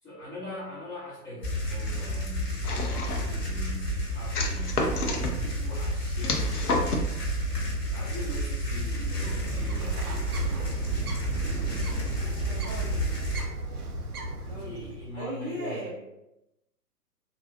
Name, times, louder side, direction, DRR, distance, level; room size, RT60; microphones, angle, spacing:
voice 1, 0.0-7.0 7.5-10.1 14.1-16.0, left 1 dB, 10° left, -11 dB, 1.1 m, -42 dB
sound 1, 1.4-13.4, equal, 85° left, 1.4 m, -31 dB
sound 2, 2.6-3.4 4.3-5.3 6.2-7.1, left 2 dB, 65° left, 0.7 m, -29 dB
voice 2, 8.7-9.3 12.4-13.2 14.5-16.0, equal, 30° right, -9 dB, 0.5 m, -39 dB
Bird, 9.2-15.1, right 2 dB, 65° right, 0.6 m, -34 dB
3.7 x 2.3 x 2.4 m, 0.91 s
figure-of-eight pair, 120°, 48 cm